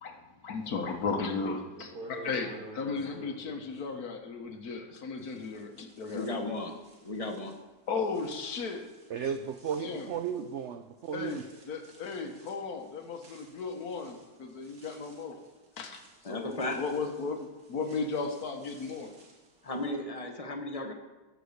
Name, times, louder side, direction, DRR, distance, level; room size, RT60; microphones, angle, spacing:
voice 1, 0.4-6.5 7.9-8.9 9.8-10.1 11.1-15.4 15.8-19.1, left 4 dB, 65° left, 5 dB, 1.5 m, -35 dB
sound 1, 1.2-1.3 1.7-4.9 5.2-19.9, right 2 dB, 60° right, 2.1 m, -53 dB
voice 2, 6.1-6.8 7.0-7.5 16.2-16.8 19.6-20.9, left 2 dB, 25° left, 4 dB, 0.9 m, -35 dB
voice 3, 9.1-11.4, right 7 dB, 85° right, 8 dB, 0.6 m, -34 dB
12.5 x 5.0 x 6.4 m, 1.2 s
omnidirectional pair, 1.8 m